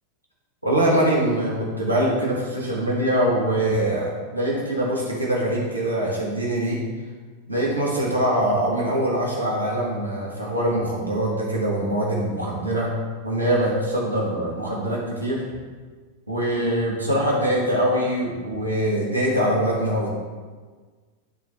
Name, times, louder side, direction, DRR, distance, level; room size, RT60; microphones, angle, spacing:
voice 1, 0.6-6.8 7.5-12.9 13.2-15.4 16.3-20.1, right 1 dB, 85° right, -4 dB, 1.7 m, -23 dB
12.5 x 4.2 x 3.6 m, 1.5 s
figure-of-eight pair, 90°, 0 cm